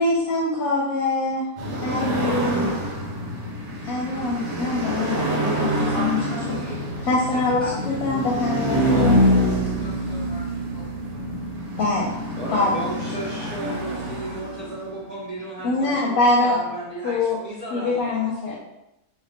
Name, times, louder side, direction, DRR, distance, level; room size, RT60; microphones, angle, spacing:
voice 1, 0.0-1.5 1.8-2.7 3.8-6.2 6.5-6.6 7.0-9.2 11.8-12.1 12.5-12.8 15.6-16.6 17.0-17.4 17.7-18.6, left 2 dB, 80° left, -5 dB, 1.0 m, -23 dB
sound 1, 1.6-15.0, equal, 60° right, 0.9 m, -26 dB
voice 2, 5.8-6.8 7.3-8.6 9.4-10.8 11.1-11.2, equal, 5° left, -7 dB, 0.5 m, -38 dB
voice 3, 12.4-18.5, right 1 dB, 75° right, -6 dB, 0.3 m, -34 dB
2.5 x 2.4 x 3.4 m, 0.88 s
omnidirectional pair, 1.5 m